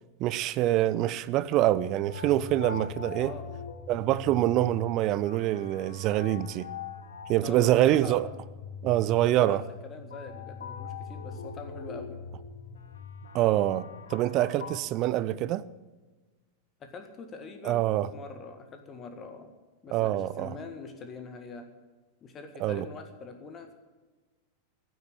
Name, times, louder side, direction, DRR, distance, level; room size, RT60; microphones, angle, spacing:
voice 1, 0.2-3.3 3.9-6.7 7.3-8.3 8.8-9.6 13.3-15.6 17.6-18.1 19.9-20.6 22.6-22.8, right 14 dB, 40° right, 0.6 m, -25 dB
sound 1, 2.0-14.8, left 5 dB, 65° left, 1.2 m, -42 dB
voice 2, 7.4-8.3 9.2-12.2 16.8-19.5 19.8-21.7 22.2-23.7, left 4 dB, 25° left, 1.7 m, -43 dB
15.5 x 8.0 x 8.9 m
figure-of-eight pair, 90°, 0 cm